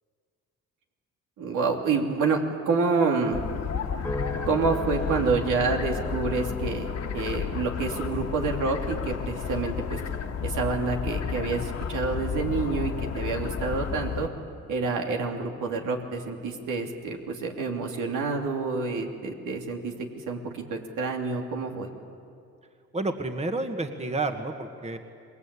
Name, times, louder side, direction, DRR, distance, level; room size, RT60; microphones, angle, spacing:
voice 1, 1.4-3.4 4.4-10.0 10.4-14.3 14.7-19.9 20.3-21.9, right 4 dB, 80° right, 1 dB, 3.1 m, -28 dB
sound 1, 3.3-14.3, left 7 dB, 60° left, 1.8 m, -32 dB
sound 2, 4.0-18.5 19.0-19.5, equal, 5° left, 2.1 m, -43 dB
voice 2, 22.9-25.0, right 2 dB, 20° right, 6 dB, 1.7 m, -30 dB
27.0 x 20.5 x 8.5 m, 2.4 s
cardioid pair, 90°, 30 cm